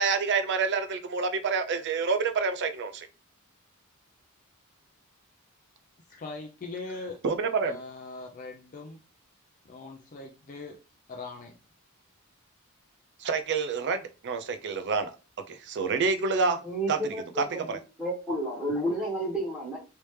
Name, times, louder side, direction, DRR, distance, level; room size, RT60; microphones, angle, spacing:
voice 1, 0.0-3.1 7.2-7.8 13.2-15.1 15.5-16.6 16.9-17.8, right 4 dB, 55° right, 0.5 m, -28 dB
voice 2, 6.1-7.2 7.6-9.0 9.6-10.8 11.1-11.5, left 3 dB, 40° left, 0.5 m, -41 dB
voice 3, 16.6-17.6 18.0-19.8, right 1 dB, 5° right, 1.3 m, -31 dB
3.3 x 2.8 x 3.2 m
head